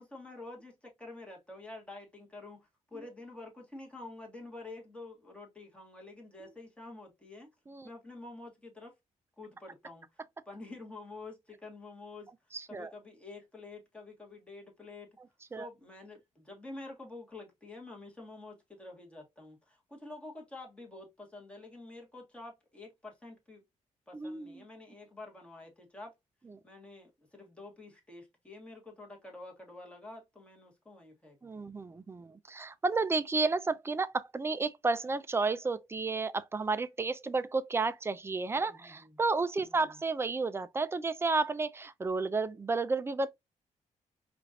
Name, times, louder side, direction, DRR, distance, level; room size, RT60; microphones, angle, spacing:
voice 1, 0.0-7.5 7.8-8.9 9.4-10.2 10.4-12.3 12.7-15.1 15.6-23.6 24.1-26.1 26.6-31.7 38.6-39.2 39.6-40.0, left 2 dB, 10° left, 1.4 m, -48 dB
voice 2, 12.5-12.9 15.5-15.7 24.1-24.6 31.4-43.3, right 3 dB, 20° right, 0.4 m, -32 dB
4.9 x 2.5 x 2.6 m
cardioid pair, 120°, 13 cm